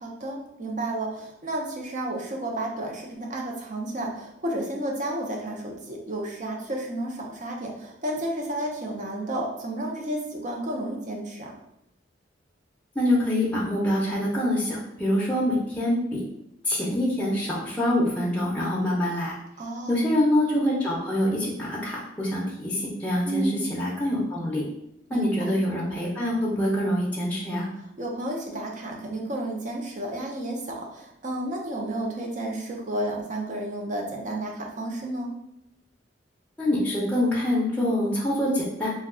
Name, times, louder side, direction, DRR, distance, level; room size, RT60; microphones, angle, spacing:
voice 1, 0.0-11.6 19.6-20.1 23.2-23.6 25.1-25.6 28.0-35.3, right 1 dB, 45° right, 0 dB, 0.6 m, -32 dB
voice 2, 12.9-16.2 16.6-19.3 19.9-24.6 25.1-27.7 36.6-38.9, left 1 dB, 10° left, -5 dB, 0.5 m, -25 dB
2.3 x 2.2 x 3.6 m, 0.80 s
head